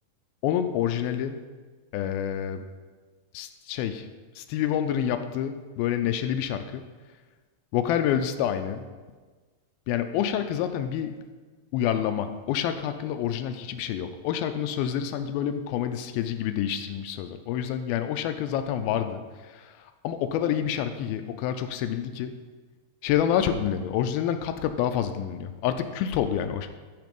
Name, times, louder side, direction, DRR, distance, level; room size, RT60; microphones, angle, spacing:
voice 1, 0.4-1.4 1.9-2.6 3.3-4.1 4.4-6.9 7.7-8.9 9.9-11.2 11.7-19.2 19.5-19.7 20.0-22.4 23.0-26.7, left 9 dB, 85° left, 9 dB, 2.4 m, -28 dB
12.5 x 5.0 x 5.3 m, 1.4 s
omnidirectional pair, 4.3 m